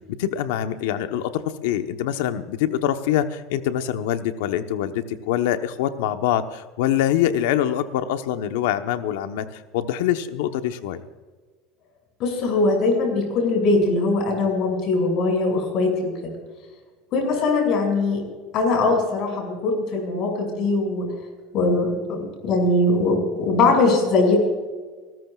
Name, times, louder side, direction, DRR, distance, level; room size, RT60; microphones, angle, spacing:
voice 1, 0.2-11.0, left 11 dB, 85° left, 9 dB, 1.0 m, -24 dB
voice 2, 12.2-16.1 17.1-18.2 18.5-21.1 21.5-24.4, left 3 dB, 45° left, 1 dB, 5.9 m, -21 dB
29.0 x 14.0 x 2.4 m, 1.4 s
cardioid pair, 150°, 0 cm